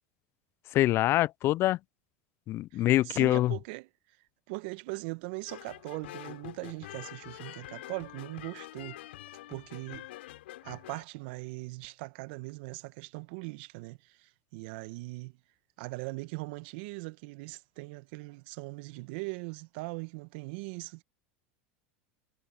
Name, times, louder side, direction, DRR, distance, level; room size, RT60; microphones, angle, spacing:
voice 1, 0.7-1.8 2.5-3.6, left 15 dB, 45° left, 0.3 m, -25 dB
voice 2, 2.7-3.9 4.5-9.0 9.5-10.1 10.6-15.3 15.8-21.0, right 25 dB, 65° right, 1.4 m, -40 dB
sound 1, 5.5-11.0, left 16 dB, 75° left, 6.9 m, -46 dB
hypercardioid pair, 90°, 6 cm